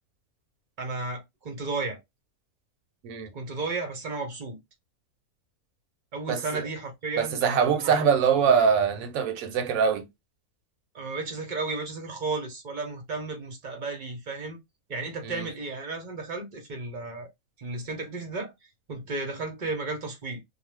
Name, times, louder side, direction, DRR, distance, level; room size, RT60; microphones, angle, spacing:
voice 1, 0.8-2.0 3.3-4.6 6.1-8.1 10.9-14.6 14.9-17.3 17.6-18.5 18.9-20.4, right 3 dB, 40° right, 0.7 m, -33 dB
voice 2, 6.3-6.6 7.2-10.1 15.2-15.5, right 6 dB, 70° right, 1.0 m, -23 dB
2.5 x 2.3 x 3.2 m
omnidirectional pair, 1.6 m